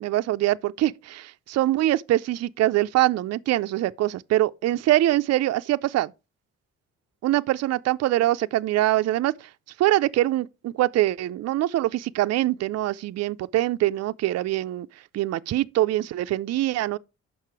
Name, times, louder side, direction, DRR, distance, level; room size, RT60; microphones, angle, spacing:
voice 1, 0.0-6.1 7.2-9.5 9.8-14.9 15.1-17.0, right 15 dB, 60° right, 0.4 m, -23 dB
6.6 x 5.4 x 4.6 m
cardioid pair, 90°, 30 cm